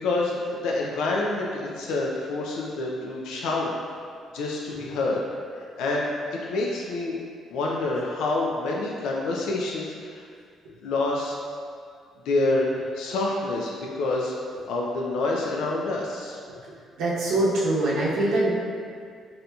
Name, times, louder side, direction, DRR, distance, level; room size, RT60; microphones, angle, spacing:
voice 1, 0.0-3.7 4.3-5.2 5.5-7.1 7.5-10.2 10.8-11.4 12.3-12.7 12.9-14.3 14.7-16.4, left 2 dB, 90° left, -2 dB, 0.4 m, -27 dB
voice 2, 17.0-18.5, right 2 dB, 85° right, -7 dB, 0.7 m, -23 dB
4.1 x 2.6 x 2.3 m, 2.2 s
cardioid pair, 175°, 0 cm